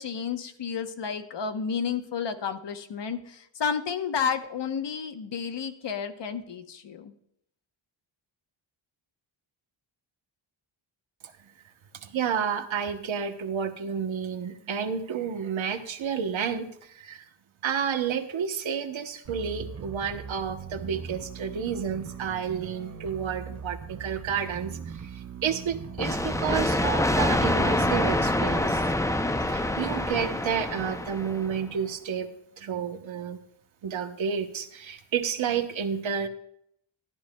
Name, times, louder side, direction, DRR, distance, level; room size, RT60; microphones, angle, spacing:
voice 1, 0.0-7.1, left 6 dB, 60° left, 9 dB, 0.9 m, -31 dB
voice 2, 11.9-17.2 17.6-28.9 29.5-32.3 32.6-33.4 33.8-36.3, right 7 dB, 70° right, 7 dB, 1.0 m, -30 dB
sound 1, 19.2-26.9, right 6 dB, 35° right, 0.6 m, -41 dB
sound 2, 26.0-31.5, left 1 dB, 5° left, 0.4 m, -26 dB
12.5 x 12.0 x 2.2 m, 0.72 s
wide cardioid pair, 85°, 48 cm